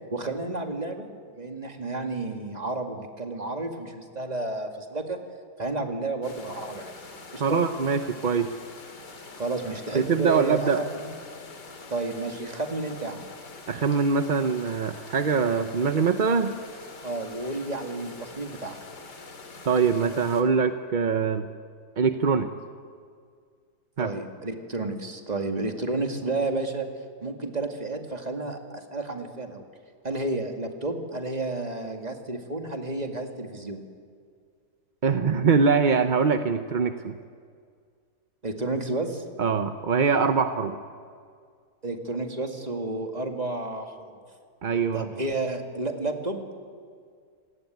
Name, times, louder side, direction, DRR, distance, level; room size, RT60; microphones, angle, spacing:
voice 1, 0.1-1.1 1.4-5.2 5.6-6.9 7.3-7.6 9.4-11.2 11.9-13.2 17.0-18.8 24.0-26.9 27.2-29.6 30.0-33.8 38.4-39.2 41.8-44.2 44.9-46.4, right 2 dB, 25° right, 4 dB, 2.2 m, -31 dB
sound 1, 6.2-20.4, left 3 dB, 80° left, 2.9 m, -45 dB
voice 2, 7.4-8.5 9.9-10.8 13.7-16.5 19.7-21.5 22.0-22.5 24.0-24.1 35.0-37.2 39.4-40.8 44.6-45.1, right 5 dB, 40° right, 8 dB, 0.7 m, -23 dB
27.0 x 18.0 x 9.3 m, 2.1 s
omnidirectional pair, 1.8 m